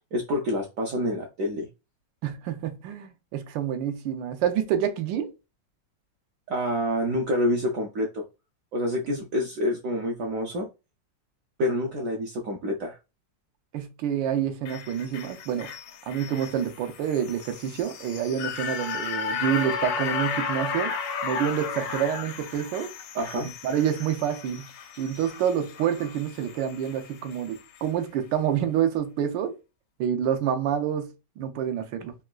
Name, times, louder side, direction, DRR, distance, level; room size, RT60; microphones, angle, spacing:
voice 1, 0.1-1.7 6.5-8.2 8.7-10.7 11.6-13.0 23.1-23.5, equal, 70° right, 0.8 m, -27 dB
voice 2, 2.2-5.3 9.1-9.2 13.7-15.7 16.1-20.9 21.2-22.9 23.6-24.7 25.0-29.6 30.0-32.1, right 9 dB, 85° right, 1.3 m, -28 dB
sound 1, 14.6-27.0 27.3-27.4, left 6 dB, 80° left, 1.2 m, -34 dB
3.7 x 2.3 x 2.3 m
omnidirectional pair, 1.9 m